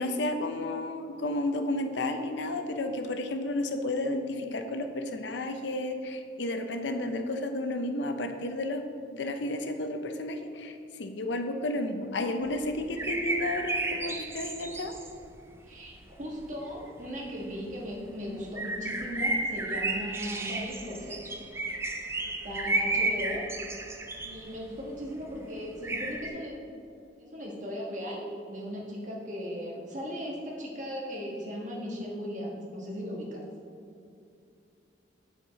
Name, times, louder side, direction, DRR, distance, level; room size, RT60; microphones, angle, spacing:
voice 1, 0.0-8.8 9.1-14.9, left 1 dB, 70° left, 7 dB, 0.6 m, -32 dB
sound 1, 12.5-15.4 15.7-16.3 16.6-17.3 17.7-26.3, right 2 dB, 15° right, 0.5 m, -33 dB
voice 2, 15.7-21.4 22.2-23.5 24.2-26.5 27.2-33.4, equal, 45° right, -2 dB, 1.4 m, -37 dB
7.3 x 7.2 x 4.0 m, 2.5 s
head